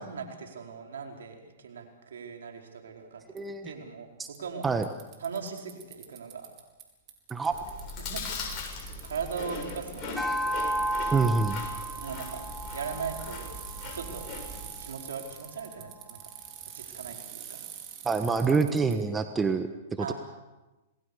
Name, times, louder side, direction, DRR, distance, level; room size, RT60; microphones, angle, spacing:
voice 1, 0.0-4.7 5.2-6.5 8.0-8.4 9.0-10.8 12.0-12.4 12.7-13.5 13.9-14.3 14.8-16.3 16.7-17.6 18.3-18.7 20.0-20.1, right 6 dB, 80° right, 3 dB, 4.7 m, -39 dB
voice 2, 3.3-3.7 4.6-4.8 7.3-7.5 11.1-11.6 18.0-19.7, right 4 dB, 15° right, 8 dB, 1.3 m, -26 dB
Bicycle, 3.4-3.5 4.3-4.4 4.6-6.8 7.1-19.0, right 10 dB, 35° right, 4.7 m, -45 dB
Chewing mastication, 7.5-14.8, left 3 dB, 35° left, 7.2 m, -40 dB
sound 1, 10.2-14.7, right 1 dB, 5° left, 1.1 m, -34 dB
27.5 x 20.0 x 7.0 m, 1.1 s
hypercardioid pair, 125°, 0 cm